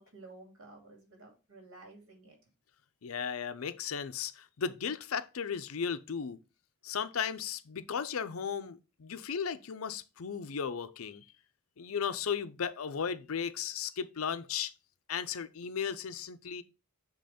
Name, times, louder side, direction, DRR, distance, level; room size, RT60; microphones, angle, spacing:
voice 1, 0.0-2.4, right 2 dB, 65° right, 2.6 m, -53 dB
voice 2, 3.0-6.4 6.8-11.3 11.8-14.7 15.1-16.6, left 7 dB, 70° left, 0.6 m, -35 dB
7.7 x 3.1 x 5.0 m
head